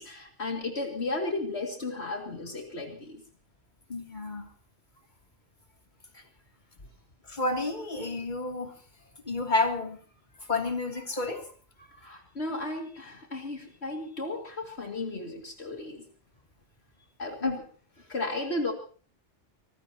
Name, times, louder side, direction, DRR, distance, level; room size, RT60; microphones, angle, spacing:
voice 1, 0.0-3.2 12.0-16.0 17.2-17.6 18.1-18.7, left 2 dB, 60° left, 2 dB, 2.5 m, -34 dB
voice 2, 3.9-4.4 7.3-8.7 9.3-10.0 10.5-11.4 17.4-17.6, left 3 dB, 40° left, 3 dB, 3.0 m, -30 dB
25.0 x 19.0 x 2.9 m, 0.41 s
omnidirectional pair, 1.2 m